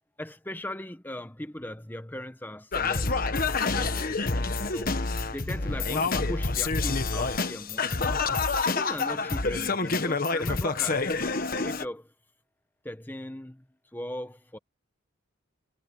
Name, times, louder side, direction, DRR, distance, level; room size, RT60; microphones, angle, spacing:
voice 1, 0.2-3.3 3.7-8.2 8.6-11.1 11.5-12.1 12.8-13.6 13.9-14.6, left 1 dB, 10° left, 1.1 m, -39 dB
Singing, 2.7-11.8, left 4 dB, 45° left, 1.3 m, -27 dB
head